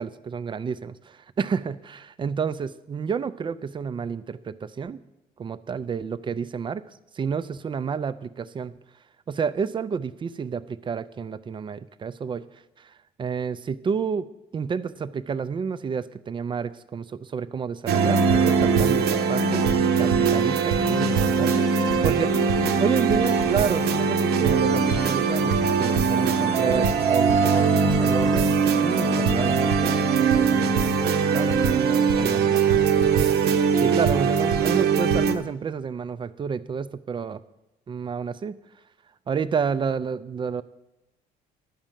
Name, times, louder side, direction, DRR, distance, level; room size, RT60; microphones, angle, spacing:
voice 1, 0.0-5.0 5.4-6.8 7.1-8.7 9.3-12.4 12.8-14.3 14.5-28.5 28.8-33.3 33.8-37.4 37.9-38.6 39.3-40.6, right 6 dB, 30° right, 14 dB, 0.5 m, -30 dB
sound 1, 17.9-35.3, right 5 dB, 75° right, 0.9 m, -21 dB
sound 2, 21.1-29.0, left 3 dB, 70° left, 1.1 m, -39 dB
11.0 x 5.2 x 7.4 m, 0.92 s
cardioid pair, 110°, 17 cm